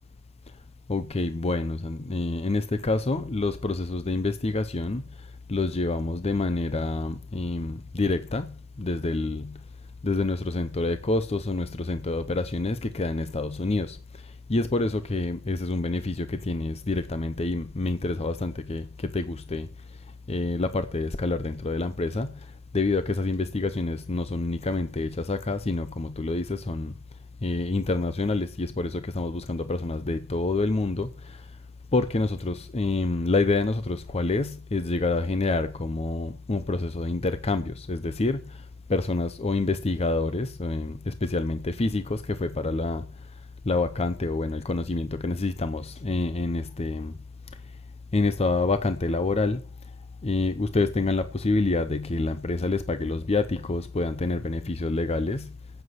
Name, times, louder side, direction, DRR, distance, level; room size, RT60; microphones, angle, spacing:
voice 1, 0.9-9.6 10.0-27.0 27.4-31.6 31.9-47.2 47.5-47.8 48.1-49.9 50.2-55.6, left 3 dB, 30° left, 0.6 m, -28 dB
9.5 x 8.1 x 6.6 m
head